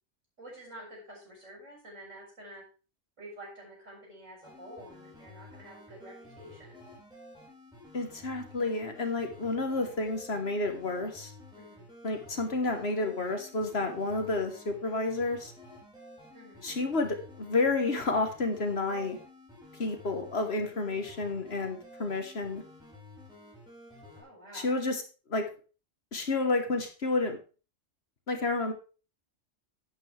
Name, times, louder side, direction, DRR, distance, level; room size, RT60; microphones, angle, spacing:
voice 1, 0.4-2.6 3.2-6.8 11.6-11.9 16.3-16.6 24.1-24.7, right 1 dB, 75° right, -3 dB, 6.3 m, -49 dB
sound 1, 4.4-24.2, left 1 dB, 5° right, 5.2 m, -52 dB
voice 2, 7.9-11.3 12.0-15.5 16.6-19.2 19.8-22.6 24.5-25.0 25.3-25.5 26.1-27.4 28.3-28.7, left 3 dB, 55° left, 6 dB, 1.7 m, -30 dB
11.0 x 9.0 x 3.4 m, 0.34 s
omnidirectional pair, 1.3 m